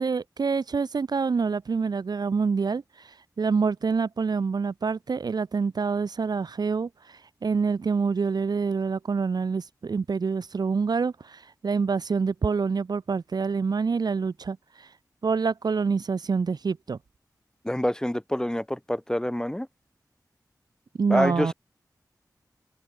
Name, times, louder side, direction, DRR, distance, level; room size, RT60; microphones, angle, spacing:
voice 1, 0.0-2.8 3.4-14.9 15.2-17.0 21.0-21.5, right 5 dB, 70° right, 0.7 m, -26 dB
voice 2, 17.6-19.7 21.1-21.5, left 1 dB, 10° left, 3.9 m, -26 dB
cardioid pair, 50°, 7 cm